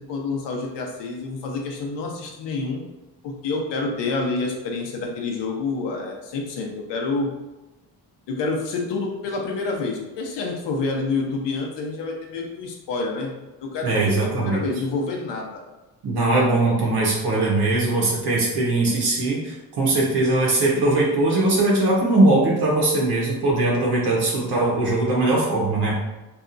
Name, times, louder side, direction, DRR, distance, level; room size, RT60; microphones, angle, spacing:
voice 1, 0.0-2.8 3.2-7.3 8.3-13.3 13.6-15.6, left 3 dB, 85° left, 1 dB, 0.7 m, -28 dB
voice 2, 13.8-14.6 16.0-26.0, right 2 dB, 70° right, -4 dB, 0.8 m, -20 dB
2.8 x 2.4 x 2.4 m, 1.1 s
cardioid pair, 125°, 41 cm